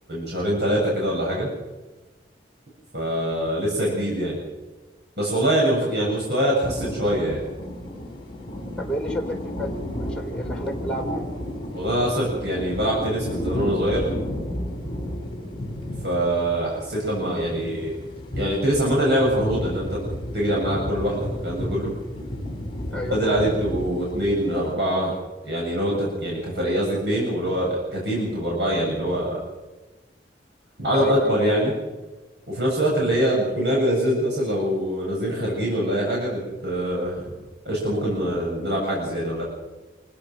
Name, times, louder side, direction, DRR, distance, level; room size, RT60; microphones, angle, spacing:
voice 1, 0.1-1.5 2.9-4.4 5.2-7.4 11.7-14.0 16.0-17.9 18.4-20.0 20.3-21.9 23.1-25.1 25.4-29.4 30.8-31.7 32.5-37.3 37.6-39.4, equal, 75° right, -4 dB, 7.6 m, -24 dB
voice 2, 5.8-6.1 8.8-11.4 22.9-23.4 30.9-31.4, equal, 5° left, -2 dB, 4.5 m, -31 dB
sound 1, 6.6-24.7, left 1 dB, 30° left, 4.8 m, -33 dB
27.0 x 16.5 x 6.5 m, 1.2 s
head